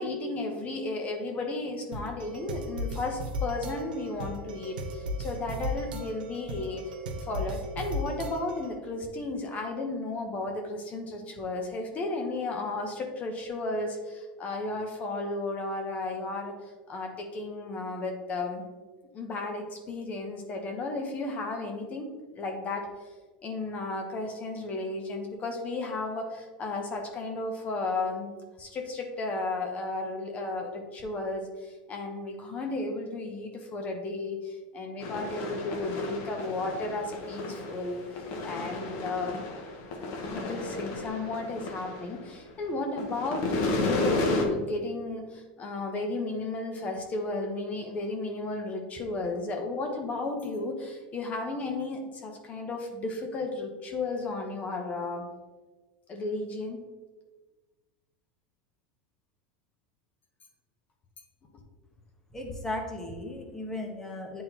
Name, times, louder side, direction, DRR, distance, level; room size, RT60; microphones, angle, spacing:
voice 1, 0.0-6.8 7.2-16.5 16.9-18.6 19.1-22.9 23.4-28.3 28.6-39.4 40.2-55.3 56.1-56.8, left 2 dB, 30° left, 3 dB, 1.0 m, -34 dB
sound 1, 1.9-8.8, equal, 90° right, 1.0 m, -36 dB
sound 2, 35.0-42.5 42.8-44.4, left 2 dB, 55° left, 1.1 m, -33 dB
voice 2, 62.3-64.4, left 1 dB, 10° left, 1 dB, 1.1 m, -36 dB
8.9 x 3.7 x 2.9 m, 1.3 s
supercardioid pair, 120°, 5 cm